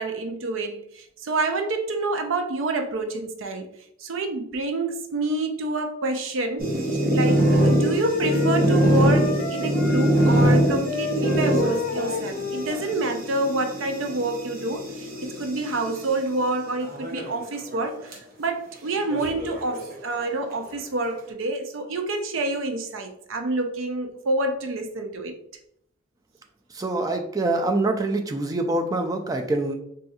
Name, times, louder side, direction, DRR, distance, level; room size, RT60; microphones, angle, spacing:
voice 1, 0.0-3.7 4.0-6.7 7.1-25.3, right 2 dB, 75° right, 0.5 m, -28 dB
sound 1, 6.6-16.0 16.8-17.4 17.7-17.8 18.1-18.2 19.1-20.2, right 1 dB, 45° right, 0.8 m, -23 dB
sound 2, 7.2-13.0, left 5 dB, 55° left, 0.5 m, -32 dB
voice 2, 26.7-29.7, right 2 dB, 20° right, 0.3 m, -25 dB
4.0 x 2.6 x 2.4 m
head